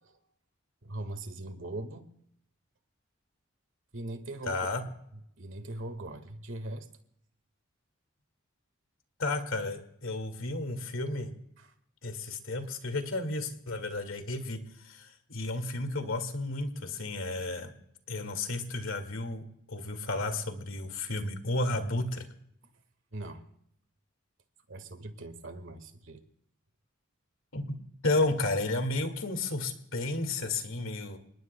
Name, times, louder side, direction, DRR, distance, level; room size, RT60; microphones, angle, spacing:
voice 1, 0.8-2.1 3.9-4.9 5.4-6.9 11.6-11.7 23.1-23.4 24.7-26.2, right 1 dB, 65° right, 9 dB, 1.7 m, -41 dB
voice 2, 4.5-4.8 9.2-11.3 12.0-17.7 18.1-22.3 27.5-27.8 28.0-31.2, left 2 dB, 85° left, 7 dB, 2.1 m, -32 dB
29.5 x 19.5 x 2.2 m, 0.76 s
head